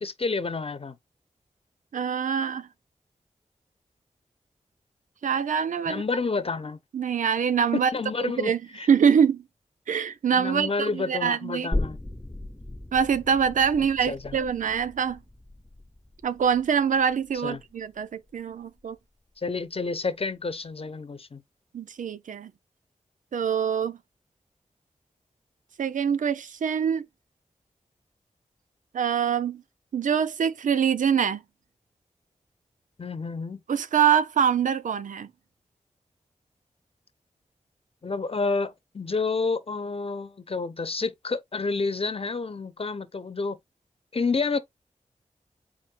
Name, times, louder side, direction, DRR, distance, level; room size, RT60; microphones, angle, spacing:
voice 1, 0.0-1.0 5.9-6.8 7.7-8.9 10.3-12.0 14.1-14.4 17.4-17.6 19.4-21.4 33.0-33.6 38.0-43.6 44.1-44.6, left 4 dB, 50° left, 0.8 m, -29 dB
voice 2, 1.9-2.7 5.2-6.0 6.9-7.9 8.2-8.6 8.9-9.4 9.9-11.7 12.9-15.2 16.2-19.0 21.7-22.5 23.3-24.0 25.8-27.1 28.9-29.6 29.9-31.4 33.7-35.3, right 7 dB, 90° right, 0.5 m, -24 dB
sound 1, 11.7-19.0 19.4-19.5, left 1 dB, 10° left, 0.5 m, -37 dB
4.2 x 2.4 x 4.4 m
cardioid pair, 45°, 13 cm